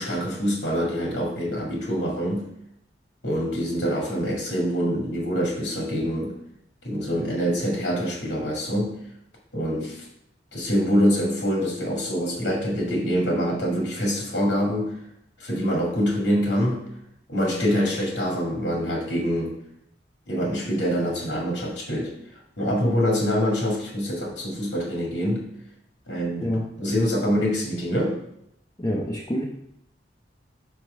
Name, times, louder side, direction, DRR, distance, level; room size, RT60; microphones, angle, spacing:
voice 1, 0.0-2.5 3.2-6.3 6.8-9.0 9.5-10.1 10.5-14.9 15.4-16.8 17.3-19.5 20.3-22.1 22.6-25.5 26.1-26.5 26.8-28.2, equal, 90° left, -2 dB, 2.2 m, -25 dB
voice 2, 28.8-29.4, equal, 20° left, -3 dB, 0.6 m, -27 dB
4.7 x 4.2 x 5.6 m, 0.78 s
head